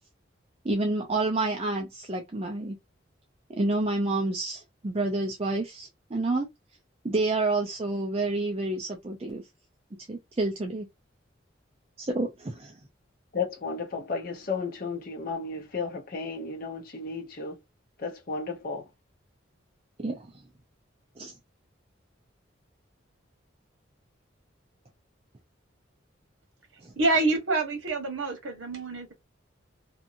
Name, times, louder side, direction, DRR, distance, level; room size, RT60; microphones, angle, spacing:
voice 1, 0.6-2.8 3.5-6.5 7.0-9.4 10.1-10.9 12.0-12.8 20.0-20.3 21.2-21.3 26.8-26.9, right 2 dB, 30° right, 0.5 m, -29 dB
voice 2, 13.3-17.6 18.0-18.9, left 4 dB, 45° left, 0.7 m, -33 dB
voice 3, 27.0-29.1, right 2 dB, 85° right, 1.2 m, -27 dB
2.8 x 2.5 x 2.5 m
head